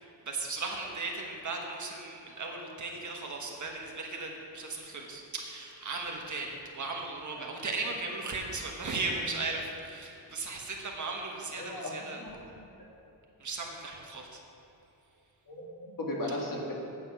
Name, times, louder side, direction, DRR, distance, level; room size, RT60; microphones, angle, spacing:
voice 1, 0.0-12.2 13.4-14.4, right 3 dB, 45° right, 1 dB, 1.3 m, -37 dB
voice 2, 11.5-12.4 15.5-16.7, left 1 dB, 50° left, -2 dB, 2.0 m, -36 dB
8.7 x 6.9 x 5.9 m, 2.9 s
cardioid pair, 110°, 42 cm